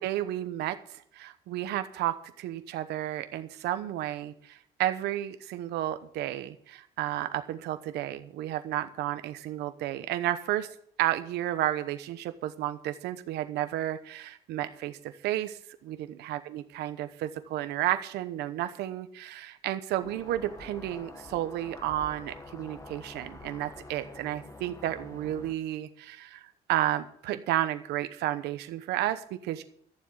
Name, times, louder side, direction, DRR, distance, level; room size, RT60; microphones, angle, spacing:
voice 1, 0.0-10.7 11.0-29.6, right 13 dB, 80° right, 10 dB, 0.9 m, -32 dB
sound 1, 20.0-25.5, left 2 dB, 20° left, 1.8 m, -47 dB
12.5 x 7.3 x 9.0 m, 0.62 s
cardioid pair, 110°, 17 cm